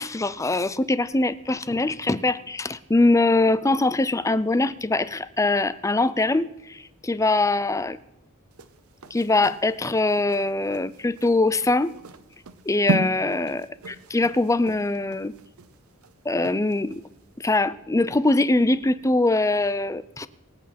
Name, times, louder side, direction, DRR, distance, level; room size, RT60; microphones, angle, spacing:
voice 1, 0.0-8.0 9.1-11.9 12.7-15.3 16.3-17.0 17.4-20.3, left 2 dB, 15° left, 16 dB, 0.5 m, -22 dB
sound 1, 8.5-17.1 17.5-17.6, right 2 dB, 90° right, 0.9 m, -34 dB
24.5 x 8.4 x 4.4 m, 0.86 s
head